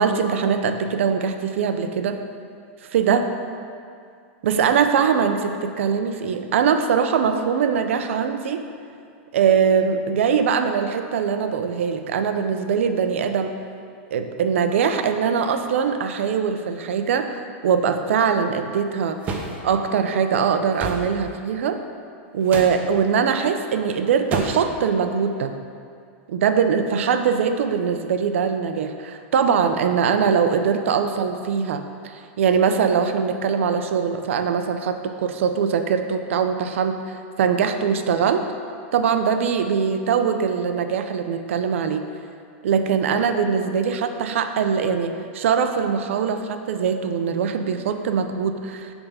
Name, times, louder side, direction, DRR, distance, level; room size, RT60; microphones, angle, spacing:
voice 1, 0.0-2.2 2.9-3.3 4.4-8.6 9.3-13.5 14.1-19.2 19.6-21.8 22.3-25.5 26.3-38.4 38.9-42.1 42.6-48.9, right 6 dB, 80° right, 7 dB, 0.5 m, -22 dB
sound 1, 19.2-19.6 20.8-21.1 22.5-22.8 24.3-24.7, right 3 dB, 20° right, 0.6 m, -28 dB
7.0 x 3.5 x 5.5 m, 2.3 s
supercardioid pair, 160°, 7 cm